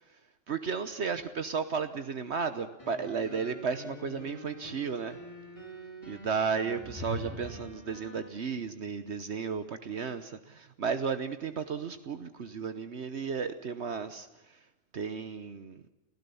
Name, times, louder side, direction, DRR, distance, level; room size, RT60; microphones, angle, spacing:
voice 1, 0.5-5.2 6.1-14.6 14.9-15.8, right 6 dB, 65° right, 10 dB, 1.3 m, -34 dB
sound 1, 2.8-8.3, left 1 dB, 25° left, 4.0 m, -48 dB
sound 2, 6.7-7.9, left 1 dB, 30° right, 5.1 m, -40 dB
29.0 x 16.0 x 7.0 m, 1.0 s
omnidirectional pair, 1.3 m